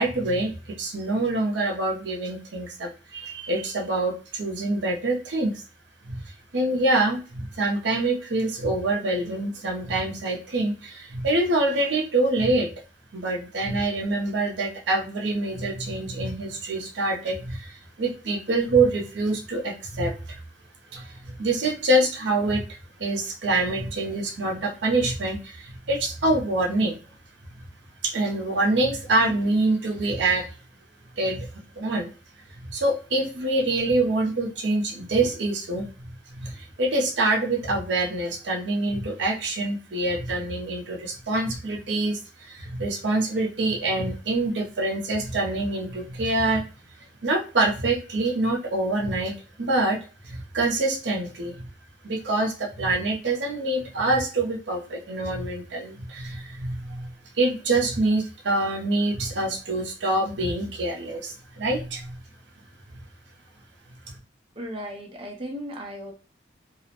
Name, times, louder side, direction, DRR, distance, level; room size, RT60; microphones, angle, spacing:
voice 1, 0.0-5.6 6.0-6.2 6.5-12.7 13.1-20.4 20.9-27.0 28.0-30.5 31.2-31.5 31.8-32.1 32.7-35.9 36.3-46.6 47.2-50.0 50.2-51.6 52.0-57.1 57.3-62.2, right 2 dB, 75° right, 1 dB, 0.6 m, -25 dB
voice 2, 64.6-66.1, equal, 30° right, 1 dB, 0.5 m, -36 dB
2.4 x 2.0 x 2.8 m, 0.34 s
head